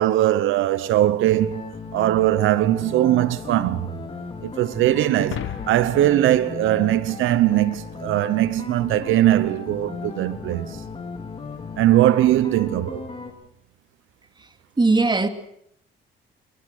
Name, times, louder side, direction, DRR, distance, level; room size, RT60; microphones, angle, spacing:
voice 1, 0.0-4.0 4.4-10.8 11.8-13.1, right 14 dB, 85° right, 0.9 m, -20 dB
sound 1, 1.3-13.3, left 4 dB, 30° left, 4.3 m, -36 dB
sound 2, 5.2-7.7, left 12 dB, 80° left, 1.3 m, -36 dB
voice 2, 14.8-15.3, right 3 dB, 20° right, 2.5 m, -19 dB
24.5 x 23.5 x 6.5 m
cardioid pair, 90°, 20 cm